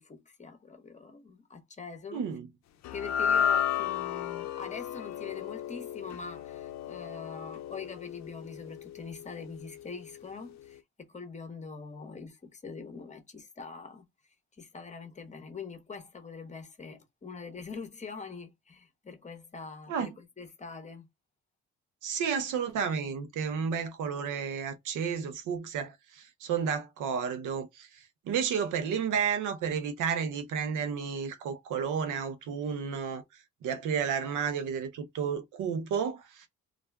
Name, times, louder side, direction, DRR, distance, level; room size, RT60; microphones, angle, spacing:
voice 1, 0.0-2.2 2.9-10.8 11.1-14.0 14.6-21.1, left 4 dB, 25° left, 0.8 m, -43 dB
voice 2, 2.1-2.5 19.9-20.1 22.0-33.2 33.6-36.5, right 7 dB, 80° right, 0.7 m, -32 dB
sound 1, 2.8-9.3, left 8 dB, 65° left, 0.5 m, -33 dB
2.4 x 2.2 x 3.3 m
cardioid pair, 90°, 30 cm